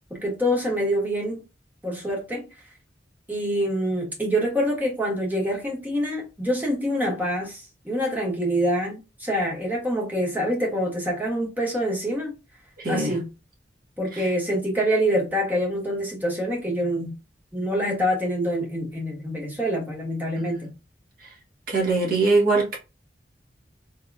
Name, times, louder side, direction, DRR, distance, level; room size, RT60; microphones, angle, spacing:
voice 1, 0.1-1.4 1.8-2.5 3.3-12.3 12.9-13.3 14.0-17.1 17.5-20.7, equal, 10° right, 1.1 m, -26 dB
voice 2, 12.8-13.1 21.7-22.8, right 3 dB, 55° right, 1.5 m, -21 dB
3.7 x 2.8 x 2.4 m
head